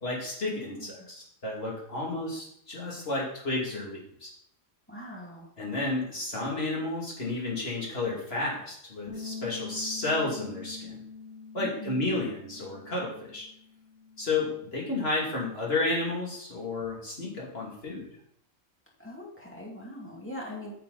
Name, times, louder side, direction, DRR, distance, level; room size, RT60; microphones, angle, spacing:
voice 1, 0.0-4.3 5.6-11.0 11.5-13.5 14.2-18.1, left 2 dB, 50° left, -3 dB, 2.8 m, -32 dB
voice 2, 0.5-1.1 4.9-5.5 11.6-12.2 19.0-20.7, equal, 10° left, -3 dB, 2.3 m, -41 dB
sound 1, 9.1-15.3, left 5 dB, 30° left, 1.9 m, -45 dB
9.8 x 6.6 x 4.0 m, 0.69 s
omnidirectional pair, 1.3 m